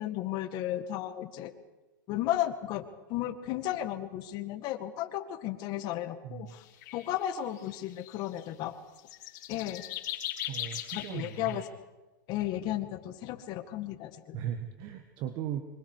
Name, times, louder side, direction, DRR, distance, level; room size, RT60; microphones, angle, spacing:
voice 1, 0.0-1.5 2.1-6.6 6.9-8.8 9.5-9.8 10.9-11.6 12.3-14.4, left 13 dB, 40° left, 9 dB, 1.9 m, -34 dB
voice 2, 6.2-6.6 10.5-11.6 14.3-15.6, right 10 dB, 40° right, 7 dB, 1.6 m, -37 dB
sound 1, 6.5-6.6 6.8-7.3 7.6-8.4 9.0-11.7, left 12 dB, 55° left, 3.6 m, -39 dB
26.5 x 25.0 x 4.9 m, 1.1 s
hypercardioid pair, 135°, 11 cm